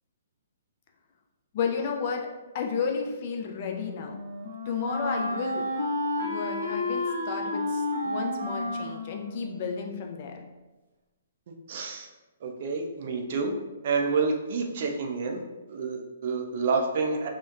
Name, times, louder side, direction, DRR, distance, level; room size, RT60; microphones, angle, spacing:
voice 1, 1.5-2.3 2.5-4.2 4.7-5.7 6.2-10.3, left 6 dB, 45° left, 2 dB, 0.3 m, -32 dB
Wind instrument woodwind instrument, 3.5-10.4, left 1 dB, 75° right, 0.9 m, -32 dB
voice 2, 11.7-12.1 12.4-13.6 13.8-15.4 15.7-17.3, right 4 dB, 50° right, 3 dB, 0.3 m, -28 dB
2.8 x 2.0 x 2.3 m, 1.1 s
figure-of-eight pair, 125°, 0 cm